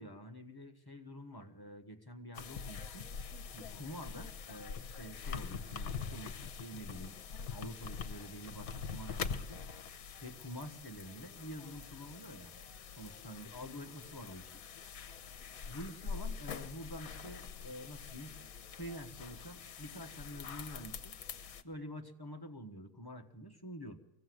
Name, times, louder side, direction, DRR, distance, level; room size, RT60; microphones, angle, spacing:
voice 1, 0.0-3.1 3.5-7.2 7.5-9.6 10.2-12.5 13.0-14.6 15.7-18.4 18.7-21.1 21.6-24.0, equal, 15° left, 3 dB, 1.2 m, -47 dB
sound 1, 2.3-21.6, left 6 dB, 70° left, 1.3 m, -44 dB
sound 2, 8.5-10.9, right 2 dB, 45° right, 4.3 m, -58 dB
24.0 x 16.5 x 7.8 m, 0.93 s
omnidirectional pair, 1.6 m